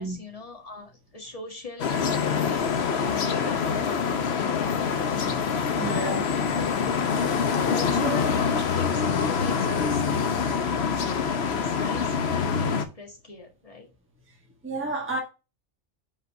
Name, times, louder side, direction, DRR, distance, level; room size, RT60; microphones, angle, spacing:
voice 1, 0.0-5.0 5.8-6.3 7.7-13.9, left 3 dB, 30° left, 1.7 m, -41 dB
sound 1, 1.8-12.8, left 6 dB, 65° left, 1.0 m, -25 dB
voice 2, 5.7-6.2 8.0-8.2 10.7-10.8 14.3-14.4 14.6-15.2, right 2 dB, 10° right, 1.3 m, -31 dB
5.3 x 3.9 x 5.6 m
omnidirectional pair, 1.2 m